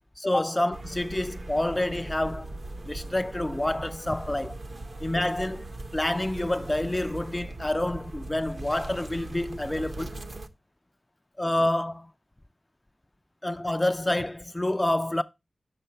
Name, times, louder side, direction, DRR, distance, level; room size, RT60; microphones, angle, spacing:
voice 1, 0.2-2.5 2.9-4.6 5.0-10.2 11.4-12.1 13.4-15.2, left 1 dB, 20° left, 0.3 m, -28 dB
sound 1, 0.7-10.5, right 2 dB, 50° right, 0.6 m, -40 dB
6.6 x 5.5 x 4.3 m
wide cardioid pair, 100°, 0 cm